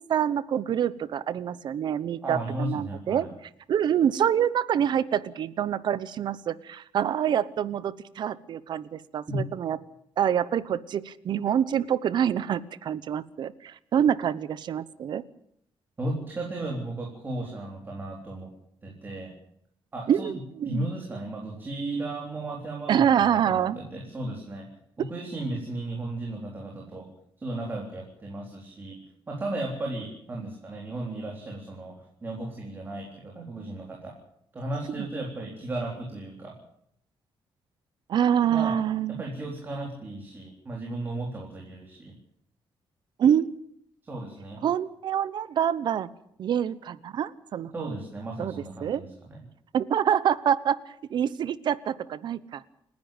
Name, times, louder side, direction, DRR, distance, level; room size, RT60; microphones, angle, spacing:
voice 1, 0.0-3.3 3.7-9.8 10.2-15.2 20.1-20.9 22.9-23.8 38.1-39.2 43.2-43.5 44.6-46.1 46.4-47.9 48.4-48.5 48.8-49.0 49.7-50.8 51.1-52.6, right 9 dB, 55° right, 17 dB, 1.0 m, -26 dB
voice 2, 2.2-3.3 9.3-9.4 16.0-18.5 18.8-19.4 19.9-20.4 20.7-27.1 27.4-29.0 29.3-34.2 34.5-36.6 38.5-38.8 39.1-42.2 44.0-44.6 47.7-49.4, right 2 dB, 20° right, -1 dB, 3.9 m, -35 dB
29.0 x 10.5 x 9.0 m, 0.71 s
cardioid pair, 175°, 9 cm